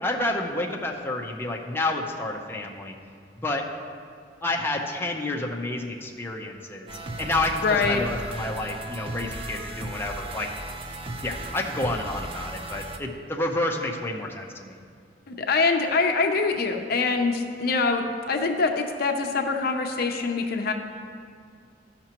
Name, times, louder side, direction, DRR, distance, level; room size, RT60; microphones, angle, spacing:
voice 1, 0.0-2.9 3.4-3.7 4.4-6.9 7.2-10.5 11.2-14.8, left 2 dB, 15° left, -1 dB, 0.6 m, -29 dB
sound 1, 6.9-13.0, right 2 dB, 30° right, 0.6 m, -36 dB
voice 2, 7.6-8.0 15.3-20.7, left 4 dB, 60° left, 4 dB, 0.6 m, -24 dB
14.0 x 5.8 x 2.9 m, 2.2 s
head